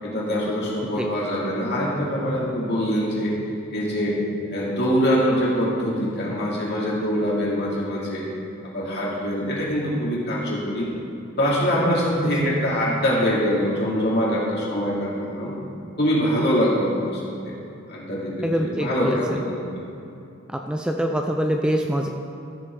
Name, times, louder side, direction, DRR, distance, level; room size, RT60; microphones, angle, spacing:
voice 1, 0.0-3.3 3.7-4.2 4.5-8.3 8.6-10.9 11.4-15.5 16.0-17.5 17.9-19.8, equal, 55° left, -5 dB, 2.5 m, -24 dB
voice 2, 18.4-19.4 20.5-22.1, equal, 5° right, 2 dB, 0.4 m, -24 dB
14.0 x 7.0 x 3.7 m, 2.8 s
head